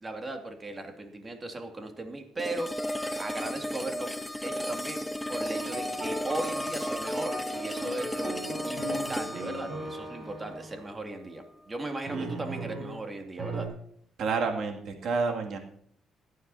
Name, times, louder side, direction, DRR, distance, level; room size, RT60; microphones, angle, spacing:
voice 1, 0.0-2.7 2.9-4.1 4.4-13.7, right 2 dB, 25° right, 4 dB, 2.3 m, -37 dB
sound 1, 2.4-11.4, equal, 5° left, 0.7 m, -34 dB
sound 2, 5.4-10.9 12.1-13.0 13.4-13.7, right 1 dB, 45° right, 6.4 m, -38 dB
voice 2, 14.2-15.6, right 4 dB, 70° right, 3 dB, 2.3 m, -29 dB
26.5 x 9.5 x 2.8 m, 0.65 s
cardioid pair, 90°, 0 cm